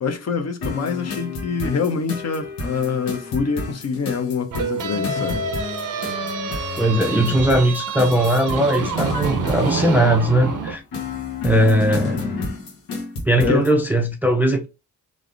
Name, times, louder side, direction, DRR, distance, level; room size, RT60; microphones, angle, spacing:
voice 1, 0.0-5.4 13.4-13.7, left 5 dB, 45° left, 0.6 m, -25 dB
sound 1, 0.6-13.8, left 3 dB, 90° left, 1.0 m, -30 dB
sound 2, 4.5-10.8, right 5 dB, 65° right, 0.6 m, -27 dB
voice 2, 6.8-10.8 11.4-12.2 13.2-14.7, right 1 dB, 5° right, 0.4 m, -19 dB
3.3 x 2.5 x 2.5 m
cardioid pair, 110°, 35 cm